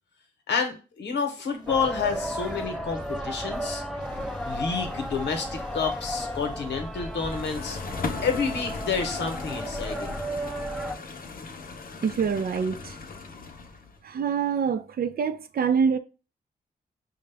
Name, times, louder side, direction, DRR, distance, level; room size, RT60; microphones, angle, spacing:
voice 1, 0.5-3.8 4.5-7.8 8.2-10.2, left 5 dB, 80° left, 0.9 m, -29 dB
sound 1, 1.4-7.2, right 1 dB, 25° right, 1.0 m, -45 dB
sound 2, 1.7-11.0, equal, 5° left, 0.5 m, -34 dB
sound 3, 7.0-14.0, left 4 dB, 55° left, 0.7 m, -38 dB
voice 2, 12.0-13.0 14.0-16.0, right 6 dB, 60° right, 0.4 m, -25 dB
4.9 x 2.1 x 3.4 m
cardioid pair, 55°, 18 cm